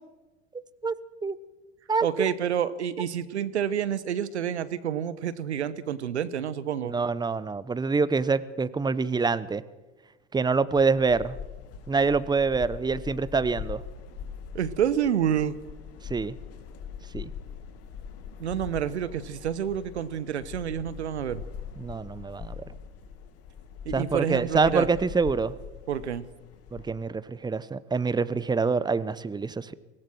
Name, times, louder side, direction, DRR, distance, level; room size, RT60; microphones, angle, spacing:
voice 1, 2.0-7.0 14.5-15.6 18.4-21.4 23.8-24.9 25.9-26.2, right 9 dB, 80° right, 16 dB, 1.2 m, -28 dB
voice 2, 6.8-9.6 10.3-11.4 11.9-13.8 16.1-16.3 17.1-17.3 21.8-22.6 23.9-25.5 26.7-29.7, right 4 dB, 10° right, 17 dB, 0.9 m, -26 dB
sound 1, 10.7-26.9, left 7 dB, 45° left, 2.7 m, -42 dB
23.5 x 18.0 x 6.2 m, 1.1 s
hypercardioid pair, 80°, 33 cm